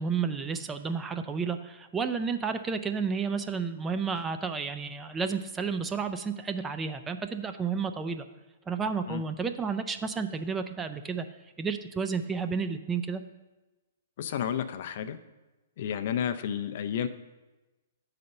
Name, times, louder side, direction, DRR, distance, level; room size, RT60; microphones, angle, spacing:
voice 1, 0.0-8.3 8.7-11.3 11.6-13.2, right 5 dB, 15° right, 8 dB, 0.4 m, -31 dB
voice 2, 14.2-15.2 15.8-17.1, left 9 dB, 55° left, 9 dB, 0.4 m, -31 dB
7.4 x 4.1 x 5.3 m, 1.1 s
hypercardioid pair, 125°, 0 cm